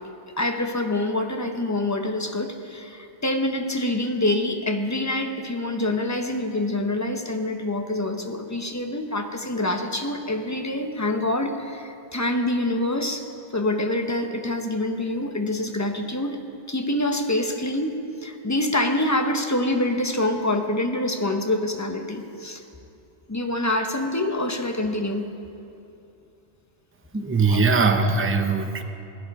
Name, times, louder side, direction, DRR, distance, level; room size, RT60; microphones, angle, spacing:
voice 1, 0.4-13.2 13.5-16.4 16.7-22.6 23.3-25.3 27.4-27.8, left 1 dB, 15° left, 5 dB, 0.8 m, -26 dB
voice 2, 27.1-28.8, right 4 dB, 15° right, 6 dB, 0.6 m, -21 dB
17.5 x 12.0 x 5.4 m, 2.7 s
omnidirectional pair, 1.2 m